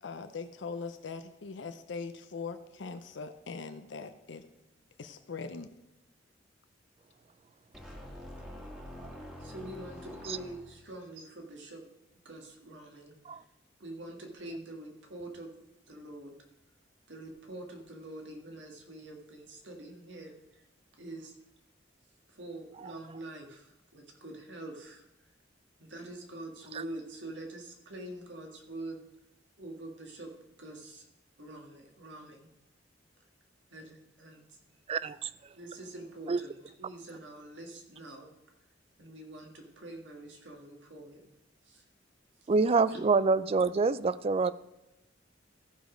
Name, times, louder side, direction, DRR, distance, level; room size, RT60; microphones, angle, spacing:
voice 1, 0.0-4.5 5.0-5.7, left 4 dB, 70° left, 9 dB, 0.6 m, -41 dB
sound 1, 7.7-10.9, left 1 dB, 5° right, 1.5 m, -46 dB
voice 2, 9.4-11.8 12.3-13.2 13.8-15.5 15.9-16.4 17.1-20.4 21.0-21.3 22.3-25.0 25.8-29.0 29.6-30.3 30.6-31.0 31.4-32.5 33.7-34.4 35.5-38.3 39.0-41.3 41.7-41.8 42.9-43.0, right 1 dB, 75° right, 2 dB, 1.8 m, -45 dB
voice 3, 34.9-35.3 36.3-36.4 42.5-44.5, right 4 dB, 30° right, 17 dB, 0.3 m, -26 dB
14.0 x 5.1 x 5.1 m, 0.93 s
head